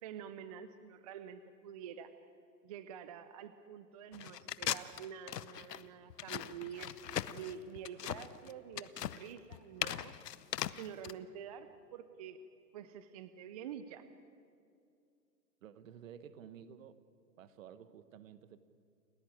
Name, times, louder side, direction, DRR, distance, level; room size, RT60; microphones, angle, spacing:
voice 1, 0.0-2.1 2.6-10.1 10.7-12.4 12.7-14.1, right 8 dB, 25° right, 11 dB, 0.5 m, -48 dB
sound 1, 4.1-11.1, left 10 dB, 70° left, 0.9 m, -39 dB
voice 2, 15.6-17.0 17.4-18.6, right 8 dB, 50° right, 13 dB, 1.4 m, -53 dB
29.5 x 13.5 x 9.1 m, 2.4 s
hypercardioid pair, 130°, 49 cm